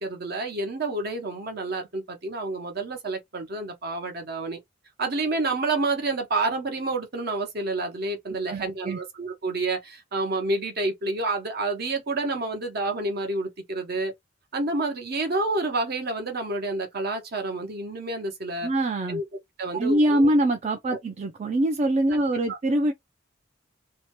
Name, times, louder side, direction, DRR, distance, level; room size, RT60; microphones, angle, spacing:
voice 1, 0.0-4.6 5.0-14.1 14.5-18.7 19.1-19.2 19.6-20.3 22.5-22.6, right 2 dB, 50° right, 0.9 m, -29 dB
voice 2, 8.5-9.0 18.6-19.2 19.7-22.9, right 1 dB, 35° right, 0.4 m, -23 dB
2.8 x 2.2 x 2.9 m
head